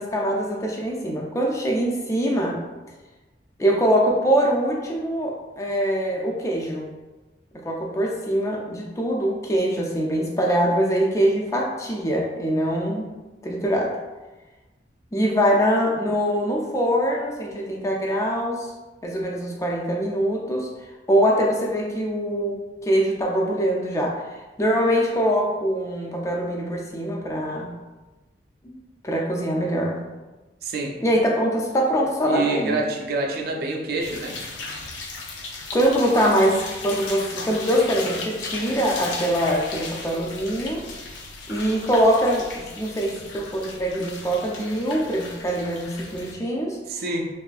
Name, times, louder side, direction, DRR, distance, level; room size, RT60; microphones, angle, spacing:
voice 1, 0.0-2.6 3.6-6.9 7.6-13.1 13.4-13.9 15.1-18.7 19.0-20.7 21.1-27.7 28.6-28.8 29.0-30.0 31.0-32.8 35.7-40.9 41.5-46.8, equal, 15° left, -1 dB, 0.3 m, -23 dB
voice 2, 30.6-30.9 32.3-34.4 46.9-47.3, right 3 dB, 55° right, 1 dB, 0.4 m, -27 dB
sound 1, 34.0-46.3, left 3 dB, 90° left, 0.4 m, -36 dB
2.6 x 2.4 x 2.3 m, 1.2 s
head